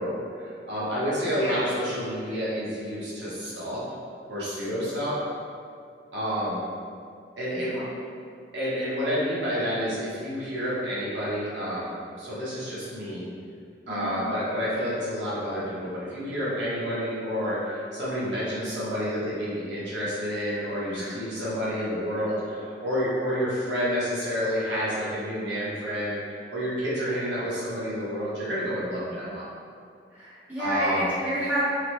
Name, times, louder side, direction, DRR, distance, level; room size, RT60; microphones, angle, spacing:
voice 1, 0.0-3.8 4.3-5.2 6.1-6.6 7.4-7.8 8.5-11.9 12.2-13.3 13.9-29.5 30.6-31.1, equal, 85° right, -8 dB, 0.8 m, -29 dB
voice 2, 1.4-1.7 7.5-7.8 13.9-14.3 20.9-21.1 29.0-29.3 30.1-31.7, right 1 dB, 10° right, -12 dB, 0.8 m, -31 dB
2.9 x 2.1 x 3.0 m, 2.2 s
head